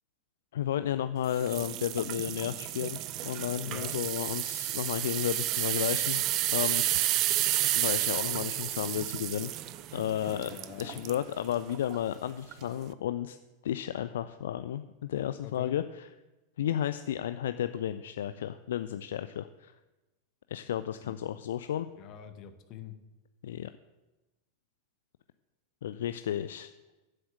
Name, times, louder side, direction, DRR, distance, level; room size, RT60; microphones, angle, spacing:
voice 1, 0.5-6.2 6.5-7.2 7.7-9.5 9.9-10.5 10.8-13.4 13.6-16.1 16.6-19.7 20.5-21.9 23.4-23.7 25.8-26.7, left 10 dB, 60° left, 12 dB, 0.4 m, -33 dB
sound 1, 1.3-11.2 11.7-12.0 12.5-12.6, right 14 dB, 40° right, 0.6 m, -31 dB
voice 2, 3.7-4.0 10.4-11.0 15.4-15.8 21.0-21.1 22.0-23.0, left 9 dB, 40° left, 8 dB, 1.2 m, -45 dB
9.9 x 7.8 x 7.4 m, 1.1 s
figure-of-eight pair, 90°, 0 cm